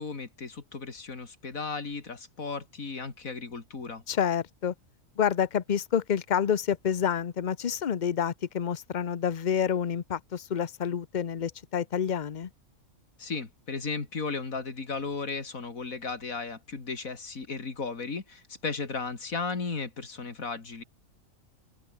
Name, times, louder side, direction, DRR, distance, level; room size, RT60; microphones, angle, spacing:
voice 1, 0.0-4.0 13.2-20.8, left 4 dB, 85° left, 3.2 m, -35 dB
voice 2, 4.1-4.7 5.2-12.5, left 8 dB, 40° left, 0.8 m, -28 dB
open air
omnidirectional pair, 1.4 m